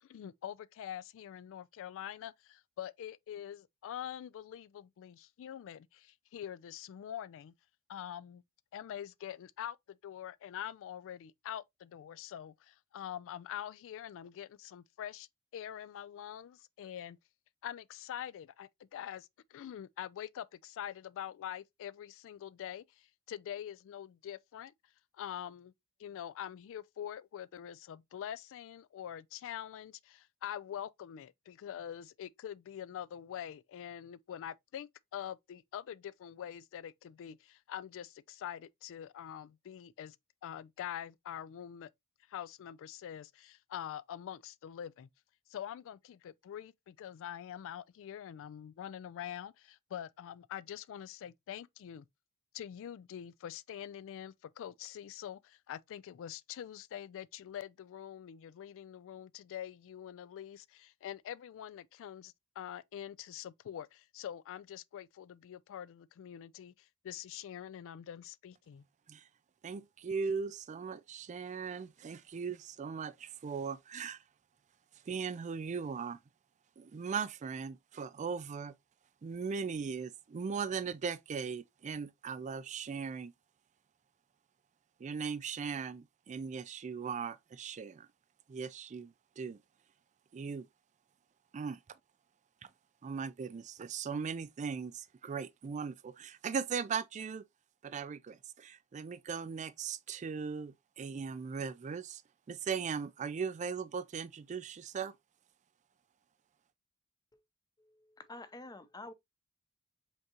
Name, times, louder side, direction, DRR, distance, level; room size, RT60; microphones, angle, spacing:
voice 1, 0.0-7.5 7.9-8.4 8.7-15.3 15.5-17.2 17.6-24.7 25.1-25.7 26.0-40.2 40.4-41.9 42.3-45.1 45.5-52.1 52.5-68.8, left 10 dB, 60° left, 0.3 m, -45 dB
voice 2, 69.6-74.2 75.1-76.2 76.8-78.8 79.2-83.3 85.0-88.1 88.5-89.6 90.3-90.7 91.5-92.0 92.6-92.7 93.0-97.5 97.8-102.2 102.5-105.2, right 6 dB, 35° right, 0.3 m, -38 dB
voice 3, 107.8-109.1, left 2 dB, 20° left, 0.6 m, -49 dB
5.3 x 3.6 x 2.8 m
head